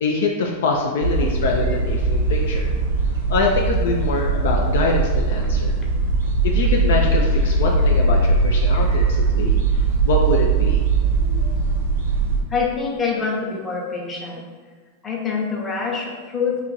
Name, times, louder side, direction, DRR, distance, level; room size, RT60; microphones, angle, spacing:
voice 1, 0.0-2.7 3.3-5.8 6.4-9.8 10.0-10.8, left 3 dB, 60° left, 0 dB, 0.4 m, -24 dB
sound 1, 1.0-12.4, right 3 dB, 60° right, 0.7 m, -20 dB
voice 2, 12.5-14.4 15.0-16.6, left 5 dB, 20° left, -2 dB, 0.7 m, -25 dB
2.9 x 2.5 x 3.9 m, 1.5 s
figure-of-eight pair, 90°, 0 cm